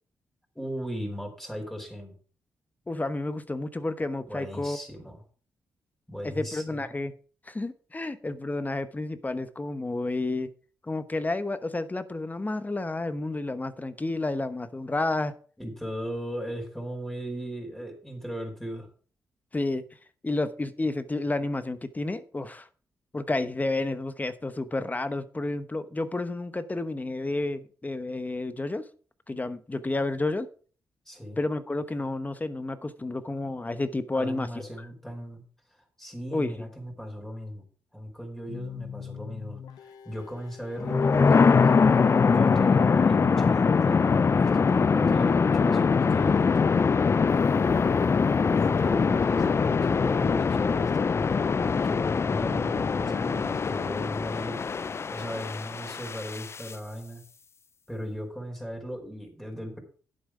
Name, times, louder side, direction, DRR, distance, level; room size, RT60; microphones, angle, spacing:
voice 1, 0.5-2.1 4.3-5.2 6.1-6.9 15.6-18.9 31.0-31.4 34.1-35.4 36.0-37.6 37.9-41.7 42.2-47.0 48.4-51.3 51.8-54.6 55.1-57.2 57.9-59.8, equal, 5° left, 2 dB, 4.9 m, -37 dB
voice 2, 2.9-4.8 6.2-7.1 7.5-10.5 10.8-15.3 19.5-19.8 20.2-22.7 23.1-28.8 29.3-30.5 31.4-34.5 36.3-36.5, left 2 dB, 25° left, 12 dB, 1.1 m, -30 dB
sound 1, 38.5-54.0, left 8 dB, 75° left, 0.9 m, -45 dB
sound 2, 40.8-56.7, left 5 dB, 40° left, 0.5 m, -23 dB
10.5 x 8.2 x 5.0 m, 0.42 s
supercardioid pair, 55°, 7 cm